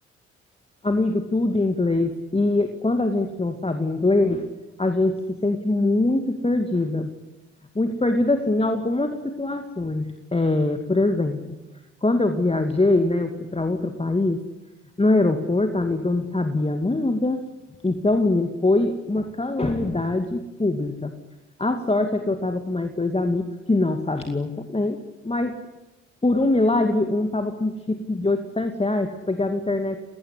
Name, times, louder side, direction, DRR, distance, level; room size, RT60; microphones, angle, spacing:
voice 1, 0.8-4.5 4.8-7.1 7.7-11.4 12.0-14.4 15.0-17.4 17.8-21.1 21.6-25.5 26.2-30.0, left 2 dB, 15° left, 6 dB, 2.3 m, -23 dB
29.0 x 19.0 x 9.9 m, 1.1 s
figure-of-eight pair, 40°, 36 cm